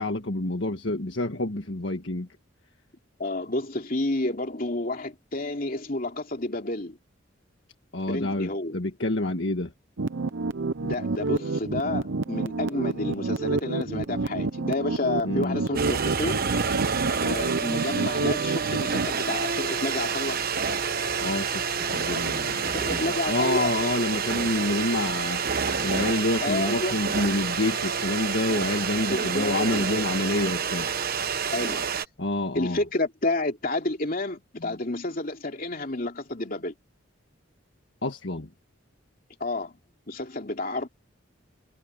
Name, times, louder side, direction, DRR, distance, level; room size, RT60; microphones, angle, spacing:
voice 1, 0.0-2.3 7.9-9.7 15.2-15.6 21.2-25.4 25.8-30.9 32.2-32.8 34.6-34.7 38.0-38.5, left 2 dB, 65° left, 1.7 m, -28 dB
voice 2, 3.2-7.0 8.1-8.7 10.8-16.4 17.2-20.4 22.7-23.7 26.4-27.0 29.1-30.0 31.5-31.9 32.5-36.7 39.4-39.8 40.1-40.9, left 2 dB, 45° left, 2.9 m, -30 dB
sound 1, 10.0-19.1, right 3 dB, 70° right, 0.7 m, -29 dB
sound 2, 15.8-32.1, right 6 dB, 50° right, 1.2 m, -28 dB
head